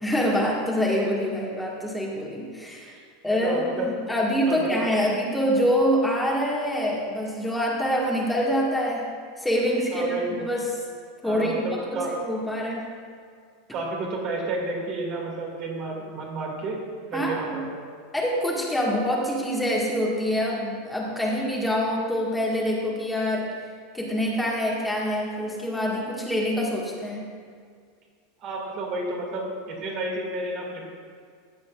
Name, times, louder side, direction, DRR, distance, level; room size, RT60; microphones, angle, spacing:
voice 1, 0.0-2.9 3.2-9.1 9.4-10.8 11.2-12.9 17.1-17.6 18.1-23.6 23.9-27.3, equal, 5° left, -3 dB, 1.8 m, -25 dB
voice 2, 3.2-3.9 4.5-5.0 9.9-10.4 11.2-12.1 13.7-16.8 17.1-17.8 28.4-30.9, right 2 dB, 50° right, -2 dB, 2.3 m, -31 dB
15.0 x 7.5 x 2.5 m, 2.1 s
hypercardioid pair, 90°, 0 cm